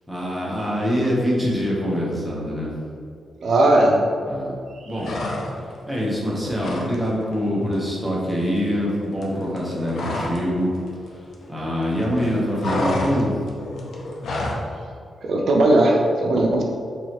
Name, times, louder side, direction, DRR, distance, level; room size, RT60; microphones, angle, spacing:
voice 1, 0.1-2.8 4.3-4.6 4.9-5.1 5.9-10.8 11.5-13.5, equal, ahead, -6 dB, 0.9 m, -24 dB
voice 2, 3.4-4.0 4.7-4.9 15.2-16.6, right 1 dB, 70° right, 0 dB, 0.4 m, -18 dB
sound 1, 5.0-5.8 6.1-6.9 7.2-7.4 7.7-10.5 10.7-11.8 12.1-14.7, left 1 dB, 75° left, 0.6 m, -29 dB
4.6 x 3.1 x 2.9 m, 2.3 s
wide cardioid pair, 135°, 0 cm